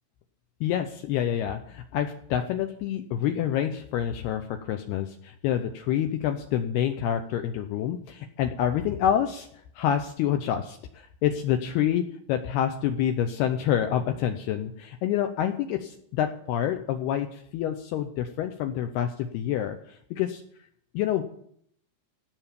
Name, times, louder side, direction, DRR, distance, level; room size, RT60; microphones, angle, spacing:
voice 1, 0.6-9.5 9.8-12.0 12.3-20.4 20.9-21.2, left 10 dB, 85° left, 6 dB, 2.3 m, -27 dB
16.5 x 5.9 x 8.5 m, 0.66 s
omnidirectional pair, 5.5 m